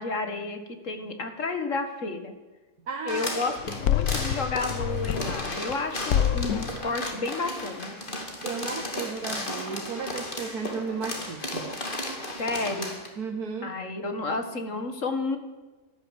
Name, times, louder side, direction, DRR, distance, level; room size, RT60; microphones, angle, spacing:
voice 1, 0.0-2.3 3.1-7.9 12.4-13.0 13.6-15.4, left 3 dB, 50° left, 7 dB, 2.0 m, -31 dB
voice 2, 2.9-3.3 3.7-3.8 8.4-11.7 13.2-13.7, right 5 dB, 70° right, 3 dB, 1.8 m, -34 dB
sound 1, 3.1-13.1, left 1 dB, 30° left, 2.5 m, -35 dB
sound 2, 3.6-5.8 6.1-6.8, left 10 dB, 70° left, 1.2 m, -27 dB
13.0 x 13.0 x 8.2 m, 1.2 s
omnidirectional pair, 1.7 m